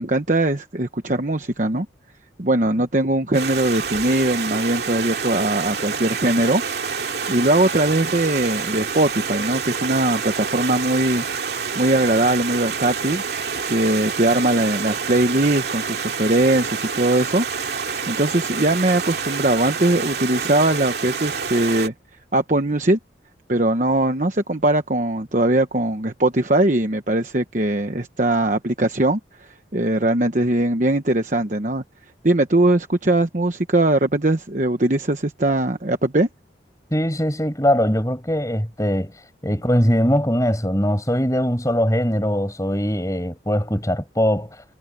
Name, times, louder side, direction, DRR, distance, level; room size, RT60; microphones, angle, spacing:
voice 1, 0.0-1.9 2.4-6.6 7.3-13.2 13.7-17.4 17.8-21.9 22.3-23.0 23.5-31.8 32.2-36.3, right 1 dB, 40° right, 1.1 m, -20 dB
Stream, 3.3-21.9, right 5 dB, 60° right, 2.4 m, -27 dB
voice 2, 36.9-39.1 39.4-44.6, equal, 15° left, 5.6 m, -21 dB
head